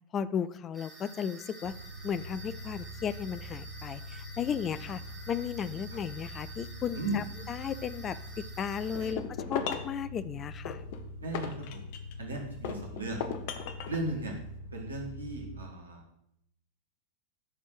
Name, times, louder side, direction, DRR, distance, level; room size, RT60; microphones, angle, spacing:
voice 1, 0.1-1.7 2.0-5.0 5.3-8.2 8.6-9.2 9.5-10.8, left 8 dB, 25° left, 16 dB, 0.4 m, -35 dB
sound 1, 0.7-9.1, right 1 dB, 10° right, 2.4 m, -50 dB
sound 2, 1.6-15.6, left 1 dB, 85° left, 3.7 m, -44 dB
sound 3, 8.9-10.0 10.7-12.2 12.6-14.0, left 7 dB, 50° left, 0.8 m, -36 dB
voice 2, 11.2-11.8 12.2-13.2 13.9-14.3 14.7-16.0, right 1 dB, 75° right, 0 dB, 1.7 m, -36 dB
11.5 x 4.3 x 4.8 m, 0.76 s
figure-of-eight pair, 90°, 0 cm